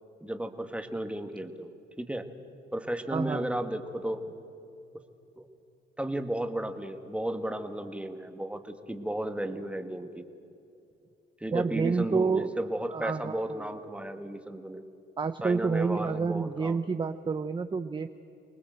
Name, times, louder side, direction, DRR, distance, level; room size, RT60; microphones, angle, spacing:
voice 1, 0.2-1.7 2.0-2.3 2.7-4.3 5.4-5.5 6.0-10.3 11.4-14.8 15.4-16.8, right 1 dB, 5° right, 7 dB, 1.6 m, -34 dB
voice 2, 3.1-3.5 11.5-12.5 12.9-13.7 15.2-18.1, right 5 dB, 25° right, 10 dB, 0.7 m, -29 dB
24.5 x 19.5 x 7.9 m, 2.8 s
cardioid pair, 90°, 20 cm